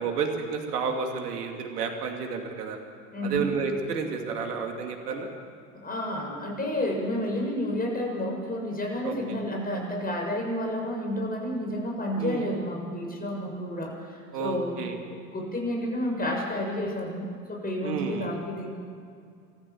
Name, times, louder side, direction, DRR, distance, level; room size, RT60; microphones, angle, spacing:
voice 1, 0.0-2.8 3.2-5.3 9.0-9.4 12.2-12.5 14.3-15.0 17.8-18.3, right 5 dB, 80° right, 3 dB, 2.6 m, -31 dB
voice 2, 3.1-3.5 5.8-15.0 15.3-17.2 17.5-18.7, left 1 dB, 20° left, 0 dB, 6.8 m, -30 dB
27.5 x 14.5 x 7.2 m, 2.3 s
hypercardioid pair, 80°, 46 cm